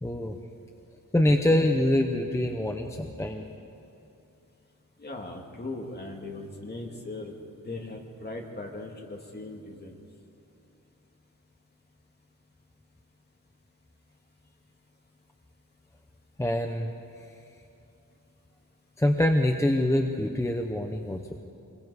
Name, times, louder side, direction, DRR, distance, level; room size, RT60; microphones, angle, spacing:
voice 1, 0.0-0.4 1.1-3.4 16.4-16.9 19.0-21.2, left 1 dB, 10° left, 4 dB, 0.7 m, -25 dB
voice 2, 5.0-7.3 7.6-10.0, left 2 dB, 30° left, 1 dB, 2.0 m, -39 dB
25.0 x 21.0 x 4.8 m, 2.7 s
wide cardioid pair, 175°, 32 cm